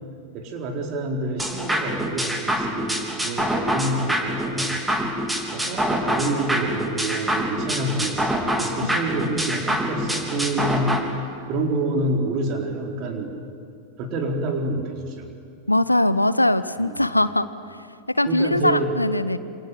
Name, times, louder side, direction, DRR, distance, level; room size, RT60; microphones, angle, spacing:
voice 1, 0.3-4.8 5.5-11.0 11.5-13.3 14.0-15.3 16.8-17.1 18.3-18.9, right 2 dB, 40° right, 3 dB, 4.2 m, -27 dB
sound 1, 1.4-11.0, equal, 5° right, 3.3 m, -25 dB
voice 2, 15.7-17.5 18.1-19.4, left 1 dB, 85° left, 15 dB, 0.9 m, -21 dB
27.5 x 25.5 x 7.8 m, 2.4 s
figure-of-eight pair, 90°, 0 cm